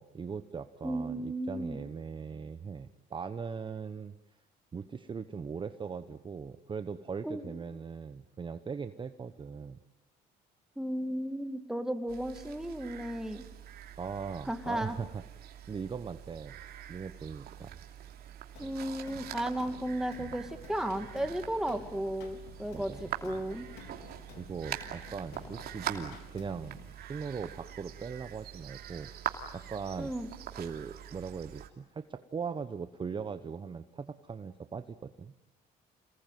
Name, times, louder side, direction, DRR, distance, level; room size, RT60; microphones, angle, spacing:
voice 1, 0.0-4.1 4.7-9.8 14.0-15.2 15.7-16.5 16.9-17.8 20.2-20.3 22.7-23.1 24.4-29.1 29.5-30.1 30.5-35.3, right 6 dB, 30° right, 10 dB, 1.1 m, -40 dB
voice 2, 0.8-1.8 7.2-7.6 10.8-13.4 14.5-15.0 18.6-23.7 30.0-30.3, right 1 dB, 5° right, 7 dB, 2.3 m, -34 dB
sound 1, 12.1-31.7, right 10 dB, 70° right, 2.9 m, -44 dB
sound 2, 18.6-26.9, left 5 dB, 85° left, 4.0 m, -52 dB
28.0 x 20.0 x 9.4 m, 0.88 s
cardioid pair, 110°, 17 cm